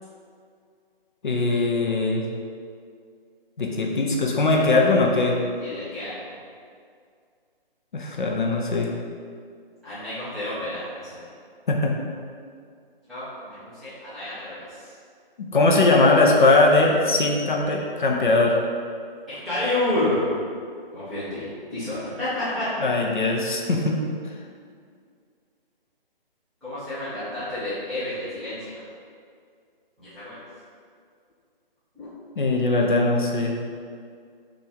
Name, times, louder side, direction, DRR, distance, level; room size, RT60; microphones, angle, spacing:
voice 1, 1.2-2.2 3.6-5.4 7.9-8.9 11.7-11.9 15.4-18.6 22.8-24.0 32.4-33.5, left 2 dB, 55° left, -1 dB, 0.7 m, -20 dB
voice 2, 5.6-6.3 9.8-11.3 13.1-14.9 19.3-20.2 20.9-22.7 26.6-28.8 30.0-30.4 31.9-32.1, left 1 dB, ahead, -18 dB, 0.6 m, -30 dB
5.7 x 2.6 x 3.5 m, 2.2 s
figure-of-eight pair, 145°, 29 cm